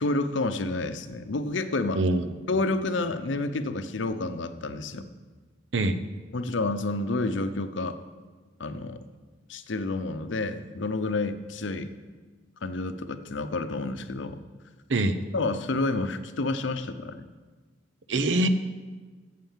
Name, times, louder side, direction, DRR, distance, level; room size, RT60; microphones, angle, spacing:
voice 1, 0.0-2.0 2.5-5.1 6.3-8.0 8.6-9.0 9.5-11.9 12.6-14.4 15.3-17.3, left 2 dB, 75° left, 10 dB, 0.7 m, -29 dB
voice 2, 2.0-2.3 5.7-6.0 14.9-15.2 18.1-18.5, right 2 dB, 70° right, 11 dB, 0.7 m, -24 dB
9.2 x 7.6 x 7.3 m, 1.4 s
head